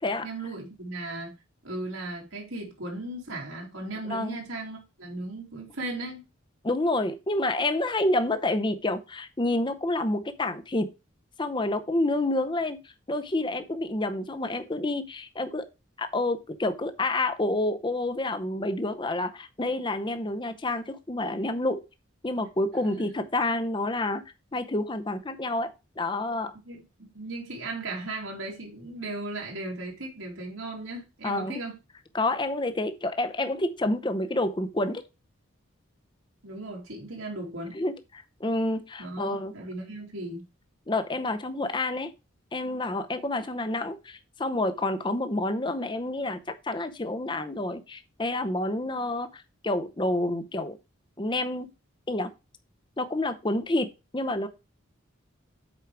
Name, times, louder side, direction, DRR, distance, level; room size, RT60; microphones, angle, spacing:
voice 1, 0.2-1.3 1.6-6.2 22.8-22.9 26.6-31.8 36.4-37.8 39.0-40.4, right 2 dB, 90° right, 2.6 m, -37 dB
voice 2, 4.1-4.4 6.6-10.9 11.4-12.8 13.1-15.6 16.0-21.8 22.2-24.2 24.5-26.5 31.2-31.6 32.1-35.0 37.7-39.5 40.9-42.1 42.5-50.8 51.2-51.7 52.1-52.3 53.0-54.5, left 2 dB, 20° left, 0.7 m, -28 dB
8.2 x 4.7 x 4.7 m
head